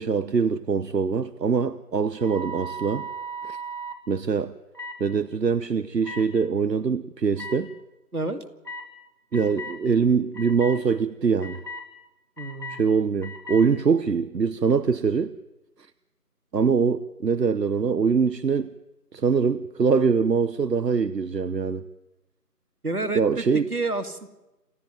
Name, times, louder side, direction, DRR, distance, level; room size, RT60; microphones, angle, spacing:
voice 1, 0.0-3.1 3.4-3.6 4.1-4.5 5.0-7.7 9.3-11.6 12.7-15.4 16.5-18.7 19.1-21.8 23.1-23.6, right 5 dB, 85° right, 0.9 m, -23 dB
sound 1, 2.2-4.0 4.7-5.0 6.0-6.2 7.4-7.5 8.6-8.9 9.3-9.8 10.3-10.8 11.4-11.8 12.4-12.8 13.2-13.6, right 1 dB, 80° left, 4.0 m, -36 dB
voice 2, 12.4-12.8 22.8-23.4 23.7-24.3, right 2 dB, 65° right, 2.1 m, -29 dB
28.0 x 13.0 x 9.2 m
figure-of-eight pair, 180°, 48 cm